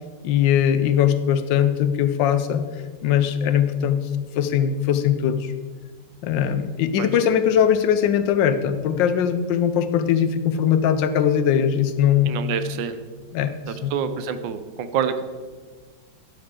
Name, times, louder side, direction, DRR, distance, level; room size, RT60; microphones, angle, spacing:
voice 1, 0.2-2.6 3.0-4.1 4.4-5.5 6.2-12.5 13.3-13.9, left 9 dB, 90° left, 11 dB, 1.4 m, -20 dB
voice 2, 12.3-13.0 13.7-15.2, right 8 dB, 90° right, 10 dB, 1.4 m, -27 dB
11.5 x 8.6 x 3.8 m, 1.5 s
omnidirectional pair, 1.9 m